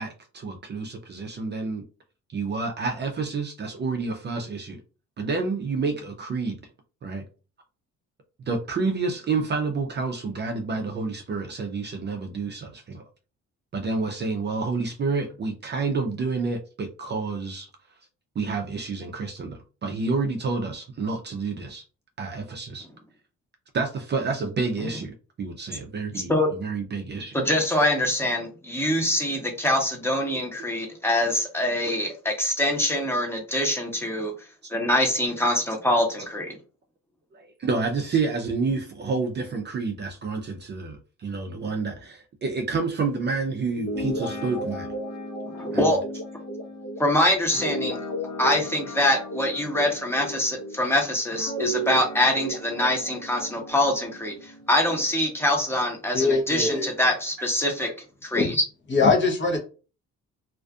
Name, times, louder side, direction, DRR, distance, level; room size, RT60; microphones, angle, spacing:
voice 1, 0.0-1.8 2.3-4.8 5.2-6.6 7.0-7.2 8.5-13.0 13.7-17.7 18.4-21.8 22.2-22.9 23.7-27.3 37.3-44.9 45.7-46.0, right 4 dB, 35° right, 4 dB, 0.4 m, -29 dB
voice 2, 26.1-26.5 27.3-34.3 34.7-36.5 41.6-41.7 45.5-46.0 47.0-48.0 48.4-57.9 58.2-58.6, left 1 dB, 10° left, 1 dB, 0.9 m, -24 dB
Guitar, 43.7-50.9 51.3-55.0, equal, 60° left, 1.1 m, -34 dB
voice 3, 56.1-56.9 58.4-58.6 58.9-59.6, left 4 dB, 40° left, 2 dB, 0.8 m, -22 dB
2.5 x 2.4 x 2.3 m, 0.35 s
cardioid pair, 90°, 30 cm